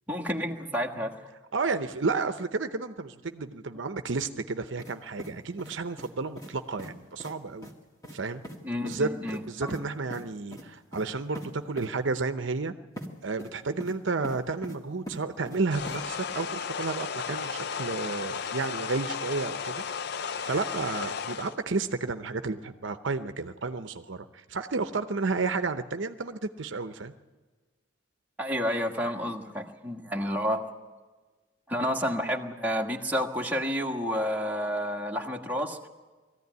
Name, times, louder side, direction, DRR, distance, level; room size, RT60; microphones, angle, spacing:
voice 1, 0.1-1.2 8.6-9.8 28.4-30.6 31.7-35.9, equal, 10° right, 0 dB, 1.5 m, -30 dB
voice 2, 1.5-7.7 8.1-8.4 8.8-9.1 9.5-12.7 13.2-19.8 20.1-27.1, right 3 dB, 65° right, 9 dB, 0.8 m, -32 dB
sound 1, 4.8-4.9 5.2-6.1 6.4-6.5 6.8-6.9 7.2-7.3 7.6-7.7 8.0-8.2 8.4-8.6 8.8-9.0 9.3-9.8 10.1-10.2 10.5-10.6 10.9-11.0 11.3-11.5 11.8-11.9 13.0-13.1 13.4-13.9 14.2-14.8 15.1-15.6 15.9-16.0, equal, 15° left, 2.1 m, -41 dB
sound 2, 15.7-21.6, left 6 dB, 55° left, 0.5 m, -34 dB
21.0 x 14.5 x 9.5 m, 1.3 s
head